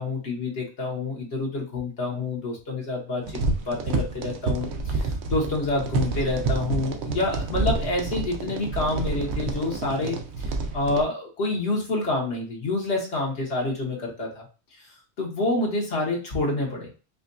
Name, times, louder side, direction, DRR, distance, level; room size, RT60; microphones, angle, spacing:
voice 1, 0.0-14.4 14.7-16.9, left 2 dB, 75° left, -2 dB, 1.4 m, -28 dB
sound 1, 3.2-11.0, right 3 dB, 75° right, 0.9 m, -29 dB
5.0 x 2.2 x 2.6 m, 0.33 s
omnidirectional pair, 1.1 m